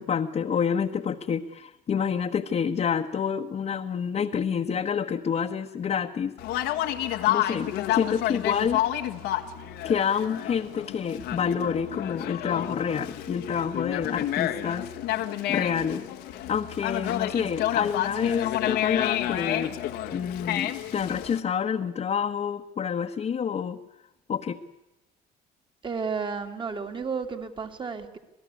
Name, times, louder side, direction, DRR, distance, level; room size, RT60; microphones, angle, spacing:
voice 1, 0.0-6.3 7.3-8.8 9.8-14.9 15.5-16.1 16.5-19.8 20.1-23.8 24.3-24.6, left 7 dB, 40° left, 1 dB, 1.3 m, -28 dB
Conversation, 6.4-21.4, left 13 dB, 90° left, 1.6 m, -30 dB
voice 2, 25.8-28.2, right 5 dB, 30° right, 7 dB, 2.5 m, -32 dB
27.0 x 18.0 x 8.4 m, 0.95 s
cardioid pair, 110°, 17 cm